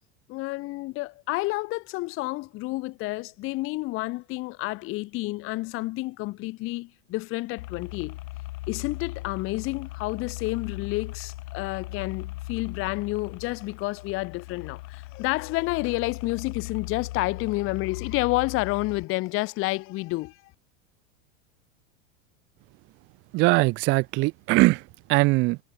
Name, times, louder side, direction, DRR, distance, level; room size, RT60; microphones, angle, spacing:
voice 1, 0.3-8.2 8.7-20.5, left 21 dB, 35° left, 0.5 m, -30 dB
sound 1, 7.6-19.0, left 19 dB, 80° left, 0.6 m, -38 dB
voice 2, 23.3-25.6, right 22 dB, 35° right, 0.4 m, -21 dB
hypercardioid pair, 115°, 38 cm